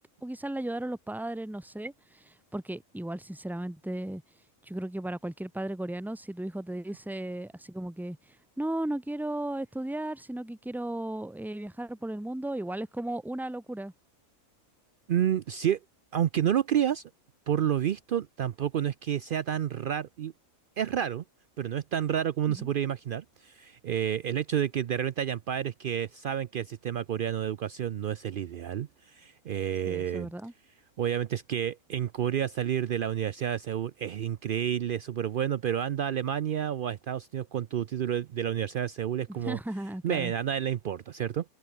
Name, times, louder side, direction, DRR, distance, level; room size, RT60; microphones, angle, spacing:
voice 1, 0.2-4.2 4.7-8.2 8.6-13.9 22.5-22.7 29.9-30.5 39.3-40.3, right 1 dB, ahead, 0.9 m, -35 dB
voice 2, 15.1-15.8 16.1-17.0 17.5-20.3 20.8-21.2 21.6-30.3 31.0-39.6 40.0-41.4, right 9 dB, 75° right, 0.4 m, -30 dB
omnidirectional pair, 1.5 m